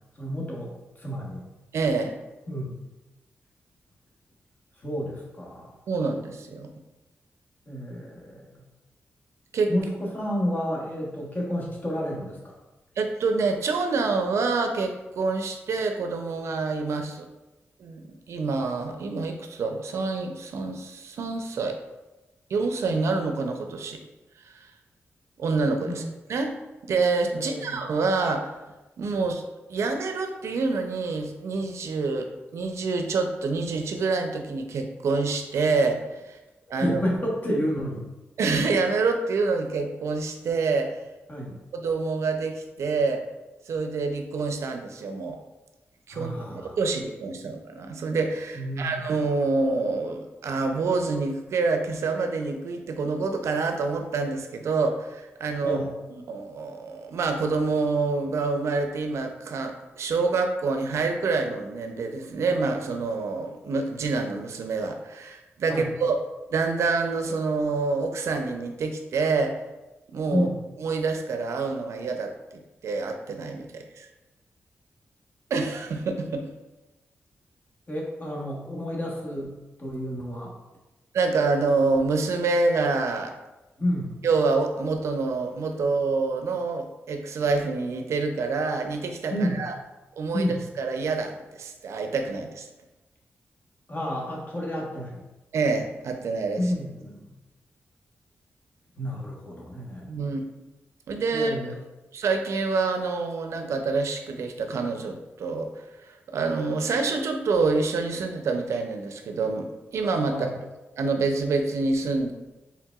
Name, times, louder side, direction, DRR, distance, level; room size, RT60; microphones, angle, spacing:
voice 1, 0.2-1.4 2.5-2.8 4.8-5.7 7.7-8.5 9.7-12.5 25.9-26.1 27.3-27.8 36.7-38.0 41.3-41.6 46.1-46.8 48.5-49.0 55.6-55.9 65.7-65.9 70.3-70.6 77.9-79.5 79.8-80.5 83.8-84.2 89.3-89.6 90.3-90.6 93.9-95.2 96.6-97.2 99.0-100.1 101.3-101.7 110.3-110.5, equal, 35° left, -3 dB, 1.1 m, -30 dB
voice 2, 1.7-2.1 5.9-6.7 9.5-9.7 13.0-17.3 17.8-18.0 18.3-21.8 22.5-24.0 24.5-24.7 25.4-26.0 26.3-26.5 26.8-28.5 29.0-29.4 29.7-36.4 36.7-37.0 38.4-40.9 41.7-43.2 43.7-45.4 46.1-55.8 56.3-66.1 66.5-69.5 70.1-70.5 70.8-72.3 72.8-74.1 75.5-76.5 81.1-83.3 84.2-89.7 90.2-92.7 95.5-96.6 100.0-100.4 101.1-101.5 102.1-110.5 111.0-112.3, right 4 dB, 80° right, 5 dB, 0.5 m, -27 dB
4.6 x 3.4 x 2.3 m, 1.0 s
cardioid pair, 80°, 5 cm